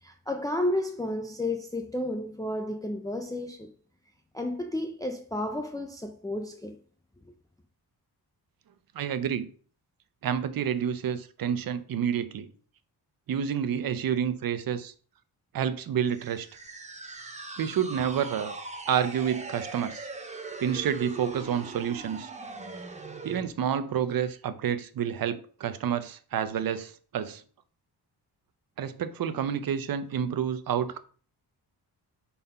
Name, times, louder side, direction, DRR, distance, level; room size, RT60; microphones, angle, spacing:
voice 1, 0.0-3.7 4.3-6.8, left 1 dB, 10° left, 0.5 m, -32 dB
voice 2, 8.9-9.5 10.2-12.5 13.3-14.9 15.5-16.5 17.6-18.5 18.9-20.1 20.6-22.3 23.2-27.4 28.8-31.0, right 8 dB, 60° right, 0.7 m, -29 dB
sound 1, 16.1-23.5, right 3 dB, 20° right, 0.8 m, -40 dB
5.4 x 4.2 x 5.5 m
wide cardioid pair, 150°, 39 cm